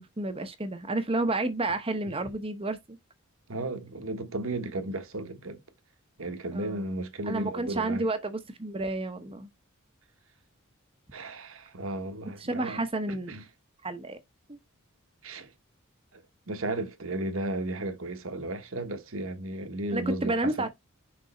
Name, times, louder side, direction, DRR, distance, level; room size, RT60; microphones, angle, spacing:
voice 1, 0.0-3.0 6.5-6.9 7.2-9.5 12.4-13.3 13.8-14.2 14.5-14.6 19.9-20.7, right 2 dB, 25° right, 0.9 m, -31 dB
voice 2, 3.5-5.6 6.2-8.0 11.1-12.8 13.3-13.4 15.2-15.5 16.1-20.7, right 2 dB, 70° right, 1.3 m, -34 dB
6.4 x 3.4 x 4.3 m
head